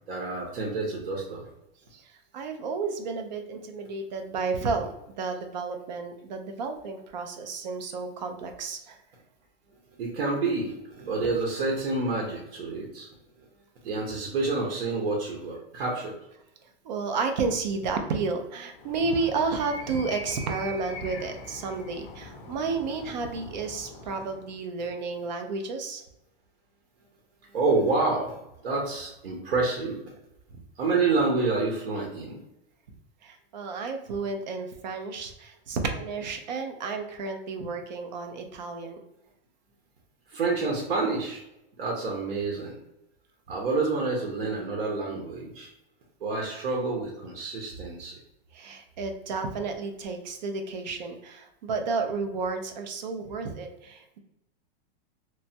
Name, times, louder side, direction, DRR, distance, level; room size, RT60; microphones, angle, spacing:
voice 1, 0.1-1.5 10.0-13.1 13.8-16.1 27.5-28.4 28.6-30.0 30.8-32.4 40.3-41.4 41.8-42.8 43.5-45.7 46.2-48.1, right 3 dB, 80° right, -2 dB, 0.9 m, -28 dB
voice 2, 1.9-9.0 11.2-11.3 16.8-26.0 33.2-39.0 48.5-54.2, right 4 dB, 45° right, 5 dB, 0.5 m, -32 dB
Animal, 18.7-24.6, left 2 dB, 55° left, 0.6 m, -42 dB
3.1 x 2.2 x 2.7 m, 0.84 s
supercardioid pair, 170°, 30 cm